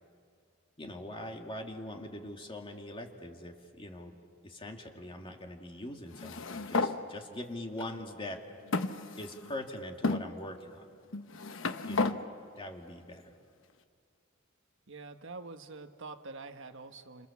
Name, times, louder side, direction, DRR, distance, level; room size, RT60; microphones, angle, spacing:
voice 1, 0.8-4.1 4.4-8.4 9.2-10.9 11.8-12.2 12.5-13.3, left 1 dB, 25° left, 2 dB, 2.2 m, -42 dB
sound 1, 6.1-7.0 7.8-7.9 8.7-9.5 10.0-10.2 11.1-12.2, left 3 dB, 65° left, 1.1 m, -32 dB
voice 2, 14.9-17.3, right 3 dB, 65° right, 7 dB, 1.5 m, -46 dB
29.0 x 27.5 x 7.2 m, 2.3 s
head